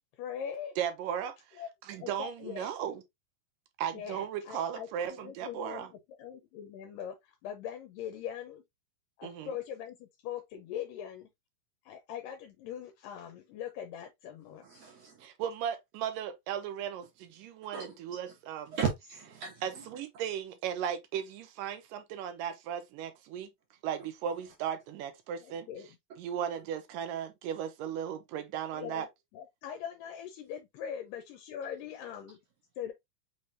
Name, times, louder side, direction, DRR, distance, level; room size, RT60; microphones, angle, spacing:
voice 1, 0.0-0.7 1.6-2.7 3.9-8.5 9.2-11.3 11.9-14.7 25.4-26.0 28.7-32.4 32.8-32.9, left 9 dB, 80° left, 2.3 m, -42 dB
voice 2, 0.8-1.6 1.9-3.0 3.8-5.9 9.2-9.5 15.2-18.8 19.6-23.5 23.8-25.7 26.2-29.1, right 9 dB, 85° right, 2.3 m, -36 dB
voice 3, 14.6-15.1 17.7-18.2 18.7-19.6, right 6 dB, 60° right, 1.9 m, -35 dB
5.6 x 3.3 x 2.6 m
omnidirectional pair, 4.0 m